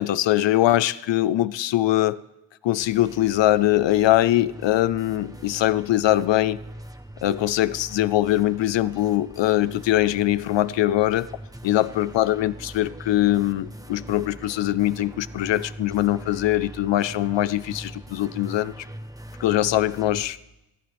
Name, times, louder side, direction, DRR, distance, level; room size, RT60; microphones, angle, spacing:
voice 1, 0.0-2.2 2.6-6.6 7.2-11.3 11.6-18.7 19.4-20.4, left 14 dB, 85° left, 0.6 m, -22 dB
sound 1, 2.8-20.3, right 1 dB, 10° right, 1.1 m, -41 dB
26.5 x 11.0 x 3.5 m
cardioid pair, 70°, 43 cm